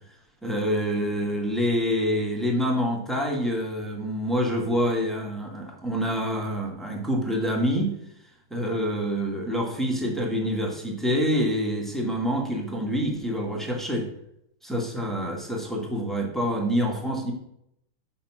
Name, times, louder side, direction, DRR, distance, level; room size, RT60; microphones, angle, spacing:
voice 1, 0.4-8.0 8.5-14.1 14.6-17.3, equal, ahead, -1 dB, 1.0 m, -26 dB
6.4 x 5.6 x 6.0 m, 0.76 s
omnidirectional pair, 2.4 m